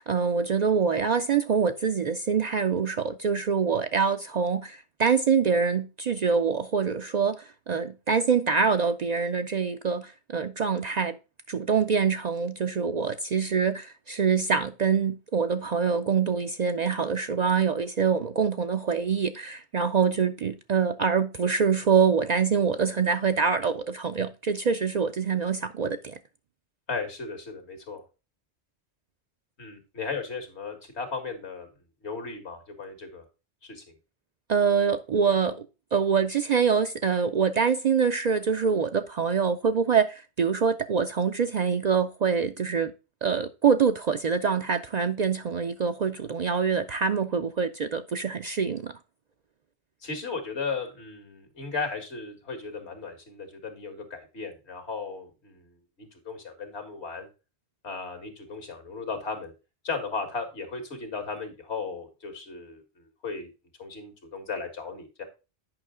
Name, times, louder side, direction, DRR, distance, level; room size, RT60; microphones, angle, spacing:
voice 1, 0.0-11.2 11.5-26.2 34.5-35.6 35.9-42.9 43.2-48.9, right 6 dB, 55° right, 0.5 m, -25 dB
voice 2, 26.9-28.0 29.6-31.7 32.0-33.2 33.6-33.8 50.0-57.3 57.8-59.5 59.8-63.5 63.8-65.2, left 4 dB, 80° left, 2.1 m, -36 dB
8.9 x 5.6 x 3.7 m
omnidirectional pair, 1.1 m